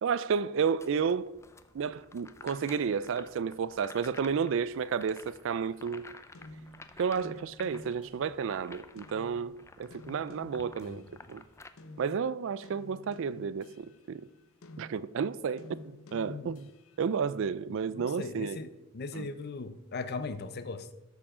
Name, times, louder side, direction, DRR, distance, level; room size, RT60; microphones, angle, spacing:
voice 1, 0.0-1.3 1.7-6.1 7.0-9.5 9.8-11.0 11.3-11.4 12.0-14.2 14.8-16.7 17.0-18.6 19.2-19.3, right 6 dB, 65° right, 0.4 m, -31 dB
sound 1, 0.8-11.7, left 3 dB, 15° left, 0.4 m, -52 dB
sound 2, 5.7-8.5 9.0-11.3 11.8-17.0, left 2 dB, 85° left, 0.8 m, -51 dB
voice 2, 17.7-20.9, left 3 dB, 50° left, 0.6 m, -39 dB
13.0 x 4.7 x 4.9 m
head